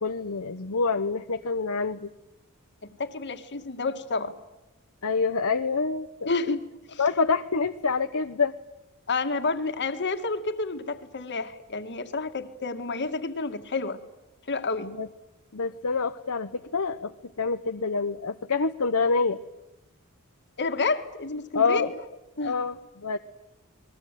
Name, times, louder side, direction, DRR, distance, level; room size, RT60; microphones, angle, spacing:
voice 1, 0.0-2.1 5.0-6.3 7.0-8.5 14.8-15.1 15.5-17.1 17.4-19.4 21.5-21.9 22.4-23.2, left 4 dB, 70° left, 8 dB, 0.9 m, -26 dB
voice 2, 2.8-4.3 6.3-6.6 6.9-7.0 9.1-14.0 14.5-15.0 20.6-21.9 22.4-22.6, left 3 dB, 50° left, 8 dB, 2.2 m, -30 dB
29.0 x 21.5 x 9.2 m, 0.97 s
head